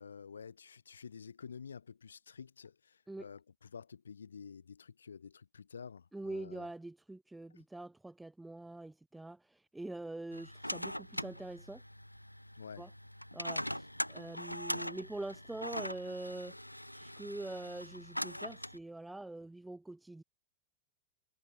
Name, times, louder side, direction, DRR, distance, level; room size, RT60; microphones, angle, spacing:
voice 1, 0.0-6.7 7.5-7.6 12.5-12.9, left 6 dB, 70° left, 3.5 m, -50 dB
voice 2, 6.1-11.8 12.8-12.9 13.3-16.5 16.9-20.2, right 2 dB, 5° right, 2.0 m, -44 dB
sound 1, 10.3-18.8, equal, 90° left, 2.0 m, -42 dB
figure-of-eight pair, 90°, 0 cm